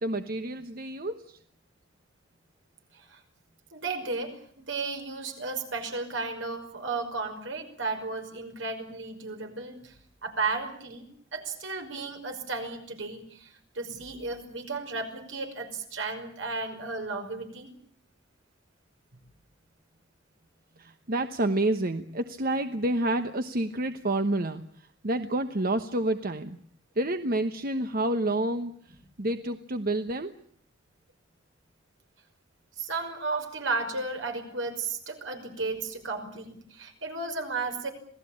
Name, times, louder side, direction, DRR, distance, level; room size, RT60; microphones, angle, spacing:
voice 1, 0.0-1.4 20.8-24.6 25.0-26.6 27.0-28.7 29.2-30.3, right 1 dB, 50° right, 8 dB, 1.1 m, -28 dB
voice 2, 3.7-9.9 10.2-11.1 11.3-17.7 32.8-37.9, right 3 dB, 80° right, 5 dB, 5.7 m, -34 dB
27.0 x 18.0 x 8.7 m, 0.62 s
head